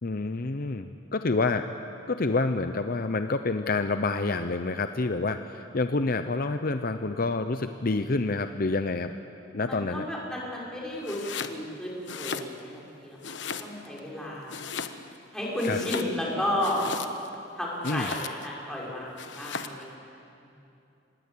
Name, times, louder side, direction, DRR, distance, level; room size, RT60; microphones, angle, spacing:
voice 1, 0.0-1.7 2.1-9.1 9.5-10.1 15.6-15.8 17.8-18.1, left 3 dB, 50° left, 9 dB, 0.7 m, -28 dB
voice 2, 9.6-14.6 15.3-16.8 17.6-19.9, left 1 dB, 5° left, -5 dB, 5.9 m, -33 dB
Domestic sounds home sounds, 11.0-11.6 12.0-12.9 13.2-14.0 14.5-15.2 15.5-17.4 17.8-18.5 19.2-19.8, left 6 dB, 65° left, 1.1 m, -37 dB
26.0 x 20.5 x 8.6 m, 2.8 s
head